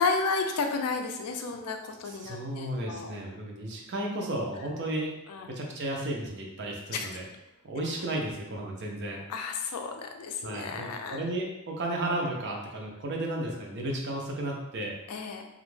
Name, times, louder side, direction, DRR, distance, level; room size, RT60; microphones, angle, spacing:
voice 1, 0.0-3.1 5.3-5.5 6.9-7.1 9.3-11.2 15.1-15.4, left 4 dB, 90° left, 4 dB, 0.4 m, -32 dB
voice 2, 2.0-5.1 5.5-7.2 7.6-9.2 10.4-14.9, right 1 dB, 50° right, 0 dB, 0.5 m, -33 dB
2.4 x 2.1 x 3.1 m, 0.94 s
head